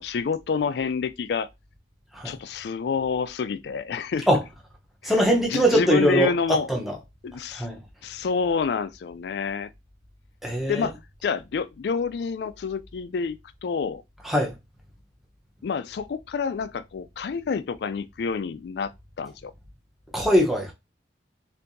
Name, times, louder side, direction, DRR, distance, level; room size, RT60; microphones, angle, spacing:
voice 1, 0.0-1.5 2.2-4.3 5.0-5.1 5.4-6.7 7.2-7.7 8.0-9.7 10.7-14.0 15.6-18.9 19.2-19.5, left 5 dB, 65° left, 0.3 m, -28 dB
voice 2, 5.0-7.0 7.5-7.8 10.4-10.9 14.2-14.5 20.1-20.7, equal, ahead, 0.8 m, -22 dB
4.4 x 2.6 x 2.6 m
head